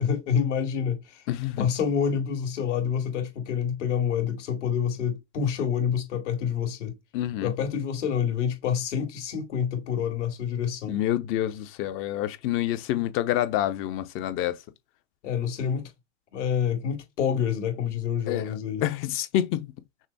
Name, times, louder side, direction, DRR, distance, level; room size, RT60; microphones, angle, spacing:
voice 1, 0.0-1.2 1.6-6.9 7.4-11.0 15.2-15.9 16.3-18.8, left 7 dB, 65° left, 2.4 m, -27 dB
voice 2, 1.3-1.7 7.1-7.5 10.9-14.6 18.3-19.7, left 12 dB, 35° left, 0.8 m, -28 dB
6.0 x 2.2 x 4.1 m
hypercardioid pair, 120°, 38 cm